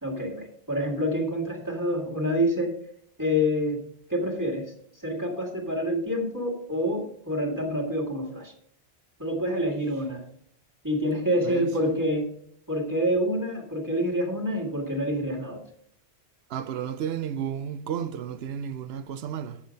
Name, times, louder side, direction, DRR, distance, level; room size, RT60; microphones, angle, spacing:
voice 1, 0.0-2.8 3.2-8.5 9.2-10.3 10.8-12.3 12.7-15.6, equal, 15° right, 1.9 m, -27 dB
voice 2, 16.5-19.6, right 8 dB, 70° right, 0.8 m, -32 dB
8.6 x 7.3 x 5.2 m
omnidirectional pair, 1.1 m